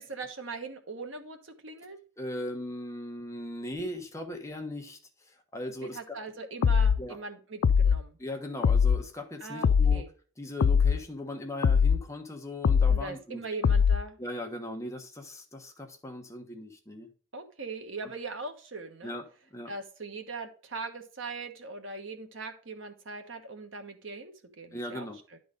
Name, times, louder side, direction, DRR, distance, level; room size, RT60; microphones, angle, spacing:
voice 1, 0.0-2.0 5.8-8.2 9.4-10.1 12.9-14.2 17.3-19.1 19.7-25.1 25.3-25.4, right 3 dB, 65° right, 6 dB, 1.3 m, -40 dB
voice 2, 2.2-6.2 7.0-7.2 8.2-10.1 10.4-13.4 14.2-17.1 19.0-19.2 19.5-19.7 24.7-25.2, left 1 dB, 15° left, 3 dB, 1.1 m, -39 dB
sound 1, 6.6-7.0 7.6-8.0 8.6-9.0 9.6-10.0 10.6-11.0 11.6-12.0 12.6-13.0 13.6-14.0, left 6 dB, 70° left, 0.4 m, -22 dB
11.0 x 4.0 x 5.1 m, 0.39 s
head